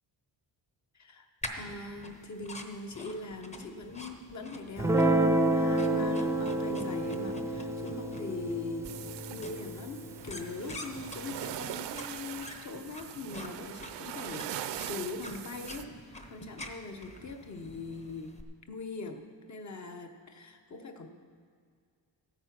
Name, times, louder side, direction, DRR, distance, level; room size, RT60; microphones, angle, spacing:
voice 1, 0.9-1.3 1.6-18.3 18.7-21.1, left 3 dB, 40° left, 5 dB, 1.1 m, -42 dB
sound 1, 1.4-18.4, left 1 dB, 15° left, 0.9 m, -47 dB
Guitar, 4.8-11.4, right 1 dB, 5° right, 0.5 m, -30 dB
sound 2, 8.8-15.8, right 11 dB, 70° right, 0.6 m, -41 dB
14.5 x 8.8 x 6.0 m, 2.2 s
wide cardioid pair, 155°, 44 cm